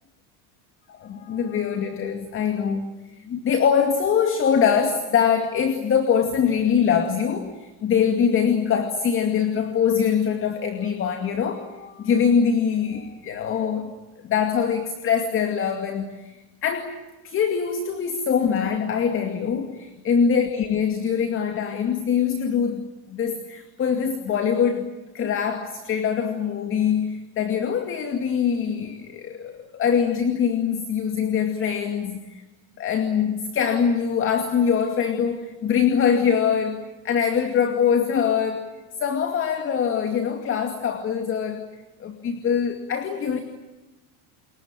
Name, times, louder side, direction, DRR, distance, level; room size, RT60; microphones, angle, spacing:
voice 1, 0.9-2.9 3.2-17.0 17.2-22.8 23.1-32.4 32.8-38.7 39.0-41.7 42.0-43.4, left 7 dB, 30° left, 7 dB, 2.4 m, -23 dB
29.0 x 22.5 x 9.0 m, 1.1 s
cardioid pair, 150°, 41 cm